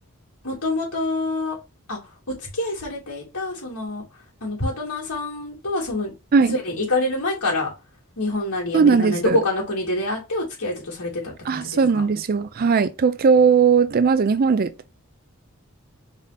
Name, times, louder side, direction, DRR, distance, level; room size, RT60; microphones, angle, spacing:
voice 1, 0.4-1.6 1.9-2.0 2.3-4.0 4.4-6.1 6.5-7.7 8.2-11.8, left 2 dB, 85° left, 2.7 m, -26 dB
voice 2, 8.7-9.4 11.5-14.7, right 5 dB, 40° right, 0.4 m, -18 dB
4.7 x 2.7 x 4.1 m
head